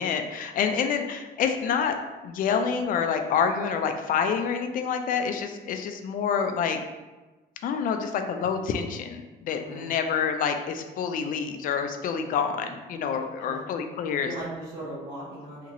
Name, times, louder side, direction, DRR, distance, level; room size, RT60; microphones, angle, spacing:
voice 1, 0.0-2.0 2.2-6.8 7.6-14.3, left 6 dB, 55° left, 6 dB, 0.4 m, -27 dB
voice 2, 9.6-10.0 13.1-15.7, right 1 dB, 85° right, -10 dB, 0.9 m, -39 dB
2.8 x 2.5 x 2.8 m, 1.2 s
cardioid pair, 110°, 17 cm